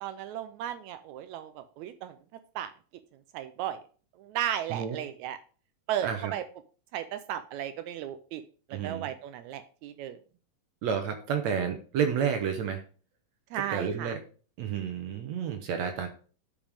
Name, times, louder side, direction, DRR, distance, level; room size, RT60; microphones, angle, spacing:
voice 1, 0.0-2.2 2.6-2.7 3.3-3.8 4.2-5.4 5.9-6.4 6.9-8.4 8.7-10.2 13.5-14.1, right 11 dB, 90° right, 9 dB, 1.7 m, -35 dB
voice 2, 6.0-6.3 8.7-9.1 10.8-12.8 13.5-14.2 14.6-16.1, right 7 dB, 65° right, 6 dB, 1.9 m, -30 dB
12.0 x 5.3 x 3.5 m, 0.38 s
omnidirectional pair, 3.9 m